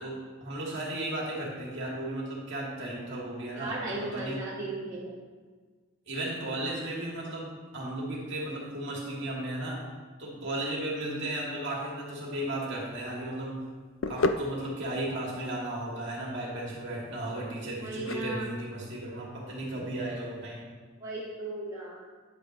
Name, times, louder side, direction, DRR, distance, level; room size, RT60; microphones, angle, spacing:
voice 1, 0.0-4.4 6.1-9.8 10.2-13.6 14.1-20.7, right 1 dB, 55° right, -4 dB, 2.3 m, -35 dB
voice 2, 3.5-5.1 17.8-18.5 21.0-22.1, right 2 dB, 15° right, -8 dB, 1.4 m, -36 dB
sound 1, 12.7-20.6, left 2 dB, 60° left, 0.4 m, -36 dB
10.0 x 8.7 x 3.1 m, 1.5 s
head